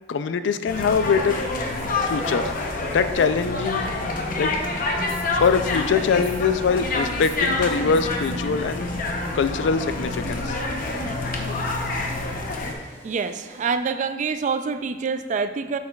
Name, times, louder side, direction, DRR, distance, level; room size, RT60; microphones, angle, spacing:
voice 1, 0.1-1.4 2.0-2.5 2.9-3.9 4.4-4.5 5.4-9.1 9.3-10.6, left 5 dB, 80° left, 12 dB, 0.4 m, -23 dB
sound 1, 0.7-12.7, left 2 dB, 50° left, 0.7 m, -27 dB
sound 2, 2.0-13.8, equal, 15° left, 0.7 m, -46 dB
voice 2, 13.0-15.8, right 5 dB, 40° right, 10 dB, 0.3 m, -26 dB
8.3 x 6.5 x 2.3 m, 1.3 s
head